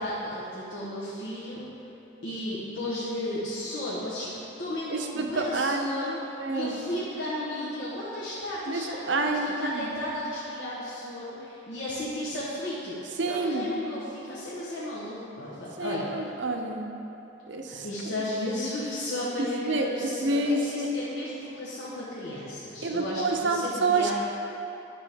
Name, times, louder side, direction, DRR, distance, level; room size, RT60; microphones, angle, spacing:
voice 1, 0.0-1.7 2.2-16.3 17.7-24.1, left 1 dB, 85° left, -9 dB, 1.3 m, -34 dB
voice 2, 4.9-6.0 6.4-6.8 8.7-10.0 13.2-13.8 15.5-16.9 17.5-17.9 19.4-20.9 22.8-24.1, right 3 dB, 65° right, 3 dB, 0.7 m, -28 dB
10.5 x 6.2 x 3.6 m, 3.0 s
head